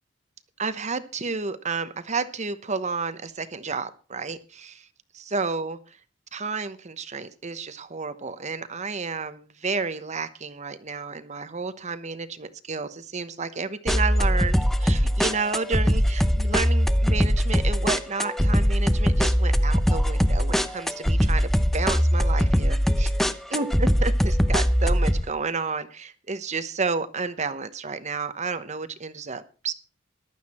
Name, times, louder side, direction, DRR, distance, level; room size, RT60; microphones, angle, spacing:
voice 1, 0.6-4.9 5.1-5.8 6.3-23.1 23.5-29.7, right 4 dB, 35° right, 12 dB, 1.0 m, -31 dB
sound 1, 13.9-25.2, equal, ahead, 0.7 m, -21 dB
15.0 x 12.0 x 4.3 m, 0.36 s
head